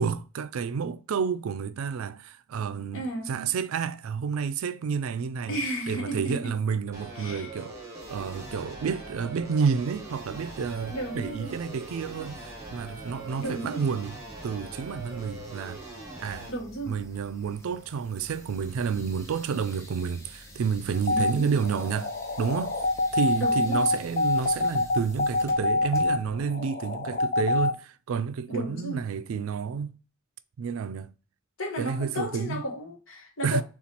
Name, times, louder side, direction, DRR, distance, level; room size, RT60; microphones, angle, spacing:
voice 1, 0.0-7.8 8.1-15.8 16.2-16.5 16.9-22.1 22.4-22.8 23.1-29.9 30.6-31.1 31.8-32.6 33.4-33.6, right 6 dB, 85° right, 0.4 m, -30 dB
voice 2, 2.9-3.3 5.5-6.5 7.1-7.5 10.9-11.5 13.4-13.8 16.5-17.0 21.1-21.6 23.4-23.8 28.5-29.0 31.6-33.6, right 1 dB, 65° left, 1.1 m, -33 dB
sound 1, 6.9-16.5, right 2 dB, 15° right, 1.1 m, -42 dB
sound 2, 8.0-26.4, equal, 15° left, 0.8 m, -49 dB
sound 3, 20.9-27.7, left 2 dB, 45° left, 0.5 m, -26 dB
6.9 x 2.4 x 2.9 m
head